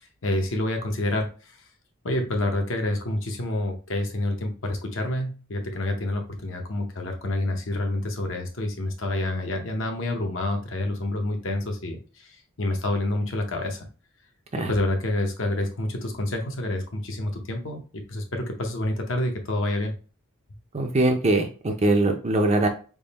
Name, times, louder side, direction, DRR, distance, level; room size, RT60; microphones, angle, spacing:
voice 1, 0.0-1.6 2.0-13.9 14.5-19.9, left 1 dB, 60° left, 4 dB, 0.7 m, -28 dB
voice 2, 20.7-22.7, right 2 dB, 30° right, 4 dB, 0.5 m, -22 dB
3.5 x 2.1 x 4.0 m, 0.36 s
head